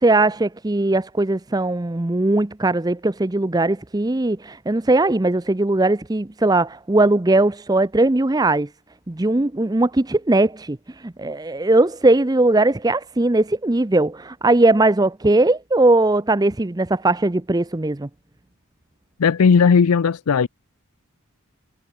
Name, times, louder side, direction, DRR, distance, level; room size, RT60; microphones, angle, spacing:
voice 1, 0.0-8.7 9.1-18.1, right 2 dB, 15° right, 0.5 m, -19 dB
voice 2, 19.2-20.5, left 6 dB, 80° left, 0.5 m, -16 dB
head